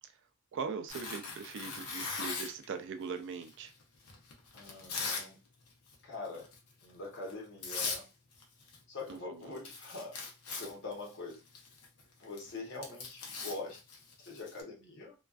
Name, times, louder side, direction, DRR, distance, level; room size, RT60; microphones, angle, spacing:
voice 1, 0.5-3.7, right 5 dB, 55° right, 0.3 m, -40 dB
Tearing, 0.9-2.7 3.4-5.3 5.6-5.9 6.3-6.6 7.3-7.4 7.6-8.0 8.3-8.8 9.1-9.2 9.4-14.6, left 4 dB, 85° left, 0.7 m, -40 dB
voice 2, 4.5-5.4 6.0-6.5 6.8-8.0 8.9-10.2 10.6-11.4 12.2-13.8 14.2-15.1, left 3 dB, 55° left, 0.9 m, -43 dB
2.3 x 2.3 x 2.3 m
head